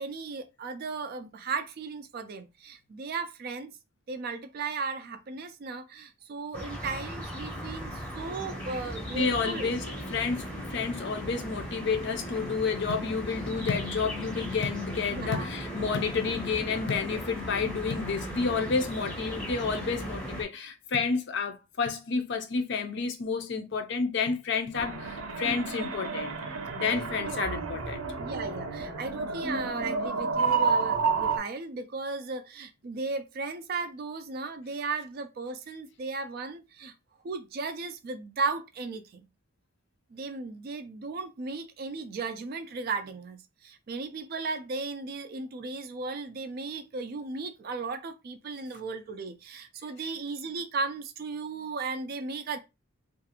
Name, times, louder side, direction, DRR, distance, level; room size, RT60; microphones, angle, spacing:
voice 1, 0.0-3.7 4.1-9.7 15.1-15.5 15.8-16.0 27.2-27.6 28.2-36.9 37.2-39.3 40.1-52.6, right 4 dB, 45° right, 0.3 m, -36 dB
sound 1, 6.5-20.4, equal, 5° left, 0.6 m, -38 dB
voice 2, 9.2-26.4 26.7-28.0, left 5 dB, 50° left, 0.4 m, -30 dB
sound 2, 24.7-31.4, right 5 dB, 80° right, 0.6 m, -30 dB
2.5 x 2.4 x 2.7 m
head